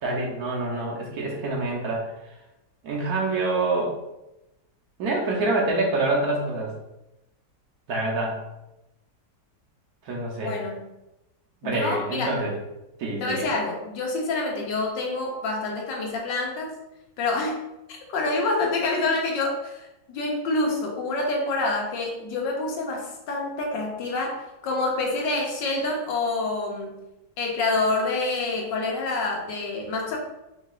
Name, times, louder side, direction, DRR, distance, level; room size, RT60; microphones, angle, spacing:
voice 1, 0.0-2.1 2.8-3.9 5.0-6.7 7.9-8.4 10.1-10.6 11.6-12.5 13.0-13.5, right 2 dB, 60° right, -2 dB, 1.3 m, -26 dB
voice 2, 10.4-10.8 11.6-12.4 13.2-16.7 17.2-17.6 17.9-27.0 27.4-30.2, left 2 dB, 80° left, 0 dB, 1.5 m, -27 dB
4.6 x 4.1 x 2.4 m, 0.93 s
omnidirectional pair, 1.9 m